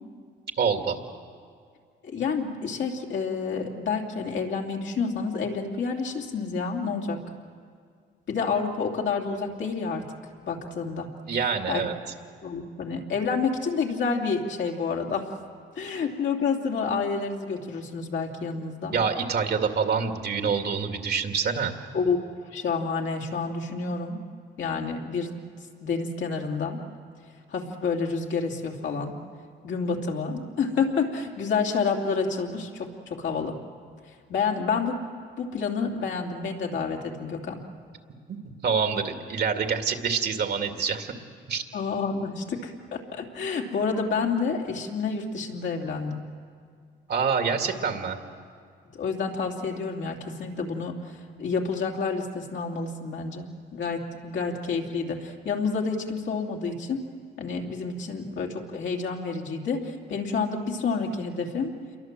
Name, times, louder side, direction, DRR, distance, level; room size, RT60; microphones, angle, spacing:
voice 1, 0.6-1.0 11.3-11.9 18.9-21.7 38.6-41.1 41.5-41.6 47.1-48.2, right 6 dB, 55° right, 5 dB, 2.3 m, -26 dB
voice 2, 2.0-7.2 8.3-10.1 10.4-11.1 11.7-11.9 12.4-15.3 15.7-19.0 21.9-24.2 24.6-25.4 25.8-26.8 27.5-29.2 29.6-33.6 34.0-35.0 35.4-37.6 41.7-46.2 48.9-57.0 57.4-61.7, left 5 dB, 65° left, 0 dB, 2.9 m, -29 dB
28.0 x 23.0 x 7.6 m, 2.1 s
cardioid pair, 90°, 20 cm